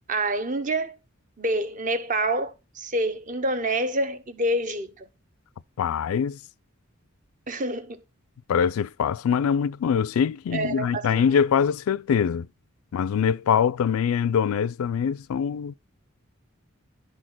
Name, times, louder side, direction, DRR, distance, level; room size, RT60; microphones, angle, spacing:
voice 1, 0.1-1.0 1.4-4.9 7.5-8.0 10.5-11.2, right 1 dB, 40° right, 0.8 m, -27 dB
voice 2, 5.8-6.4 8.5-12.5 12.9-15.7, left 7 dB, 80° left, 0.3 m, -23 dB
11.5 x 4.3 x 4.3 m
head